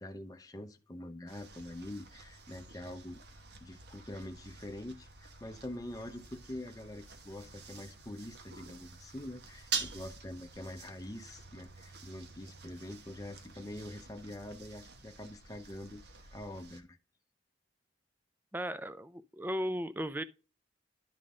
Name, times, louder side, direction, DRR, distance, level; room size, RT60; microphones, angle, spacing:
voice 1, 0.0-3.2 3.6-17.0, left 1 dB, 20° left, 0.7 m, -45 dB
sound 1, 1.3-16.8, right 5 dB, 55° right, 1.1 m, -47 dB
voice 2, 18.5-20.2, equal, 10° right, 0.4 m, -36 dB
11.5 x 3.9 x 3.7 m
head